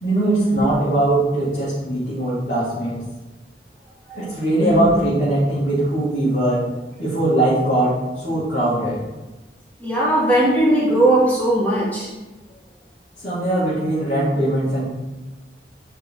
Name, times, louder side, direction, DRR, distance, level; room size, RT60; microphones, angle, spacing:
voice 1, 0.0-3.0 4.1-6.6 7.0-9.0 13.2-14.8, right 1 dB, 45° left, -11 dB, 2.0 m, -20 dB
voice 2, 4.6-5.0 9.8-12.1, right 1 dB, 10° left, -7 dB, 1.8 m, -18 dB
9.1 x 3.4 x 3.6 m, 1.1 s
head